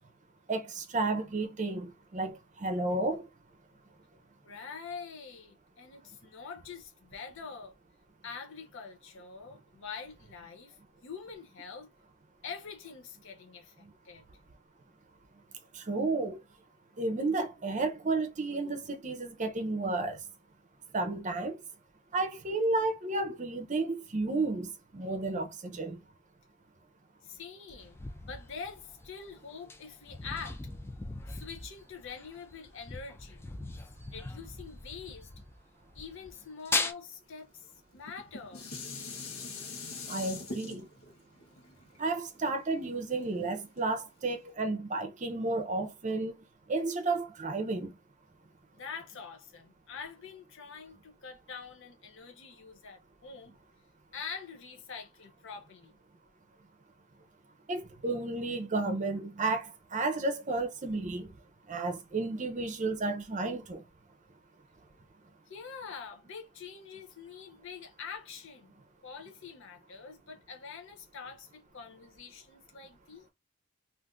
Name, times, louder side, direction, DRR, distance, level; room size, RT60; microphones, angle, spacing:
voice 1, 0.5-3.3 13.8-13.9 15.7-16.4 17.0-20.2 20.9-21.6 22.1-26.0 40.1-40.9 42.0-46.3 46.7-48.0 57.7-61.3 61.7-63.8, right 3 dB, 35° right, 0.6 m, -32 dB
voice 2, 4.4-7.7 8.2-10.8 11.0-11.9 12.4-14.2 27.2-30.6 31.3-33.4 34.1-35.3 35.9-37.5 37.9-38.6 48.8-53.6 54.1-55.9 65.5-68.8 69.0-73.3, left 5 dB, 60° left, 0.6 m, -45 dB
sound 1, 27.8-35.6 35.9-36.9, left 3 dB, 10° left, 0.3 m, -39 dB
Dishes pots and pans, 37.9-43.2 43.8-43.9, left 3 dB, 75° left, 1.0 m, -43 dB
2.5 x 2.5 x 3.5 m
head